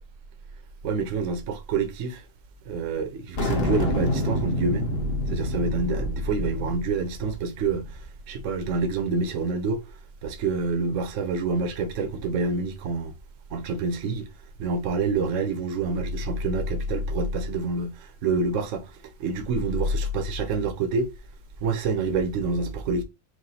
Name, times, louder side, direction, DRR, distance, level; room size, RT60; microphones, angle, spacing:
voice 1, 0.8-2.2 2.7-4.9 5.3-9.8 10.2-13.1 13.5-14.3 14.6-21.1 21.6-23.0, right 3 dB, 55° right, 0.8 m, -27 dB
sound 1, 3.4-8.0, left 1 dB, 40° left, 0.9 m, -28 dB
4.8 x 2.2 x 4.1 m
omnidirectional pair, 2.1 m